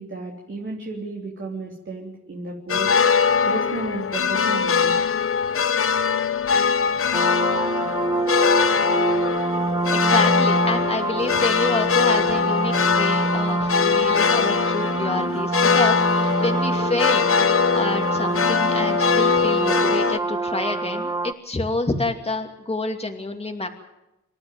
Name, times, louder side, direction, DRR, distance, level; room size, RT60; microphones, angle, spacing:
voice 1, 0.0-2.9 3.5-5.0, right 3 dB, 40° right, -1 dB, 3.4 m, -33 dB
sound 1, 2.7-20.2, left 6 dB, 45° left, 0.8 m, -22 dB
sound 2, 7.1-21.3, right 3 dB, 15° right, 0.8 m, -25 dB
voice 2, 9.9-17.3 17.7-23.7, left 2 dB, 20° left, 3 dB, 2.5 m, -28 dB
27.0 x 12.0 x 9.3 m, 0.92 s
wide cardioid pair, 105°, 30 cm